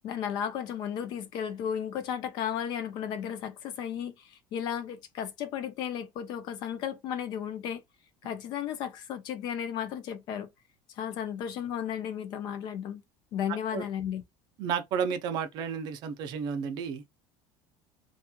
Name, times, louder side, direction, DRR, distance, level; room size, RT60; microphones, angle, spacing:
voice 1, 0.0-7.8 8.2-10.5 10.9-13.0 13.3-14.2, left 9 dB, 45° left, 0.5 m, -34 dB
voice 2, 13.5-13.8 14.6-17.1, right 7 dB, 45° right, 0.5 m, -32 dB
2.9 x 2.3 x 2.2 m
cardioid pair, 165°, 10 cm